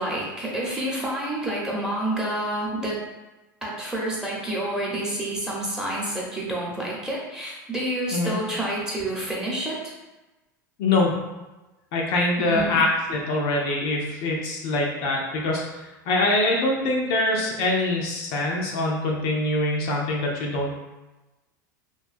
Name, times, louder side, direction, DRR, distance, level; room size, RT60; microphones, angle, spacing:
voice 1, 0.0-3.0 3.6-9.8 12.4-12.8, right 1 dB, 5° right, -5 dB, 0.9 m, -28 dB
voice 2, 10.8-11.1 11.9-15.6 16.1-20.8, left 2 dB, 60° left, -2 dB, 0.5 m, -24 dB
2.6 x 2.3 x 2.5 m, 1.1 s
hypercardioid pair, 90°, 11 cm